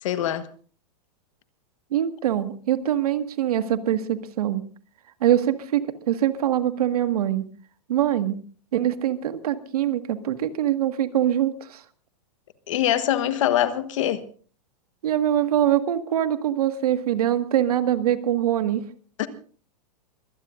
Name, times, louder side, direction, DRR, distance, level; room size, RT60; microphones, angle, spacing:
voice 1, 0.0-0.5 12.7-14.2 19.2-19.3, left 11 dB, 50° left, 1.3 m, -23 dB
voice 2, 1.9-4.6 5.2-5.8 6.1-7.4 7.9-8.4 8.7-11.8 15.0-18.8, right 11 dB, 70° right, 1.7 m, -23 dB
24.5 x 17.5 x 2.5 m
supercardioid pair, 175°, 20 cm